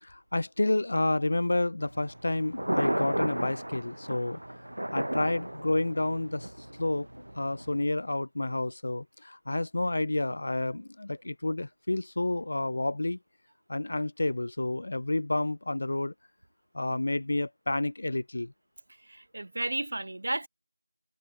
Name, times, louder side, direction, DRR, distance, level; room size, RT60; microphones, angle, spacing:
voice 1, 0.0-4.4 4.9-6.5 6.8-7.1 7.4-13.2 13.7-16.1 16.7-18.5, left 2 dB, 25° left, 0.3 m, -30 dB
Thunder, 1.8-7.8, right 1 dB, 75° right, 0.5 m, -34 dB
voice 2, 19.0-20.5, right 2 dB, 30° right, 0.8 m, -33 dB
figure-of-eight pair, 180°, 0 cm